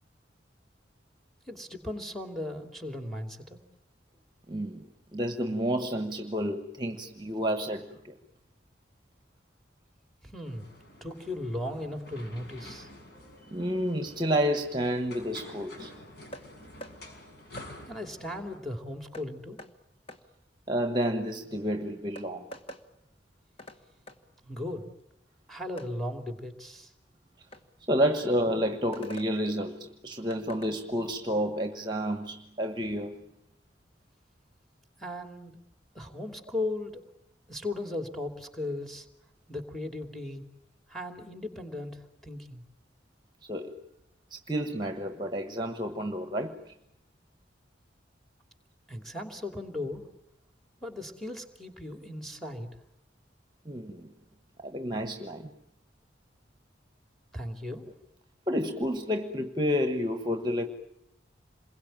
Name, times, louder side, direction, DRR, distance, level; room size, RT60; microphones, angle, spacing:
voice 1, 1.5-3.6 10.2-10.7 11.0-12.9 17.9-19.6 24.4-24.9 25.5-26.9 35.0-35.6 35.9-37.0 37.5-39.1 39.5-40.5 40.9-42.6 48.9-50.0 50.8-52.7 57.3-57.9, left 1 dB, ahead, 2.8 m, -37 dB
voice 2, 4.5-8.1 13.5-15.9 20.7-22.5 27.9-33.2 43.5-43.7 44.3-46.7 53.6-54.1 54.6-55.5 58.5-60.7, equal, 25° right, 1.3 m, -30 dB
sound 1, 10.4-18.6, left 1 dB, 60° left, 6.0 m, -49 dB
sound 2, 16.3-16.5 16.8-17.0 17.6-17.7 19.1-19.3 19.6-19.7 20.1-20.2 21.6-21.7 22.2-22.8 23.6-23.8 24.1-24.2 25.8-25.9 27.5-27.6 28.9-29.3 30.3-30.7, equal, 30° left, 1.5 m, -44 dB
27.5 x 22.0 x 9.0 m
head